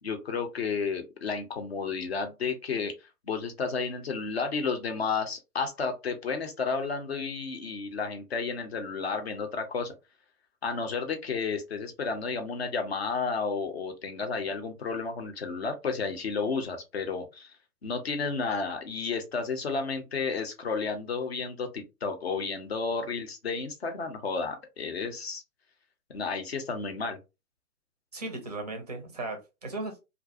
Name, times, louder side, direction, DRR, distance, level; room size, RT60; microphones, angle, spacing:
voice 1, 0.0-2.9 3.3-9.9 10.6-17.5 17.8-25.4 26.1-27.2, left 4 dB, 45° left, 0.6 m, -32 dB
voice 2, 28.1-30.0, right 2 dB, 30° right, 0.4 m, -36 dB
2.4 x 2.1 x 2.5 m
figure-of-eight pair, 135°, 46 cm